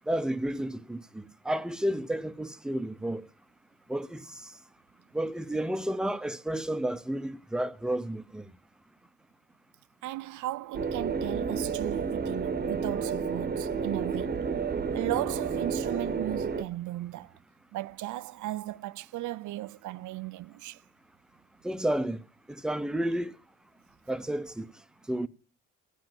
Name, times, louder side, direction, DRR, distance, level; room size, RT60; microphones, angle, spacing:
voice 1, 0.1-3.3 3.9-4.4 5.1-8.4 21.6-22.2 22.5-23.4 24.1-24.7 25.1-25.3, right 1 dB, ahead, 0.6 m, -31 dB
voice 2, 10.0-14.4 14.9-17.3 17.7-20.8, right 16 dB, 75° right, 0.5 m, -36 dB
sound 1, 10.7-16.6, right 5 dB, 30° right, 0.9 m, -31 dB
15.5 x 5.4 x 7.7 m
cardioid pair, 90°, 30 cm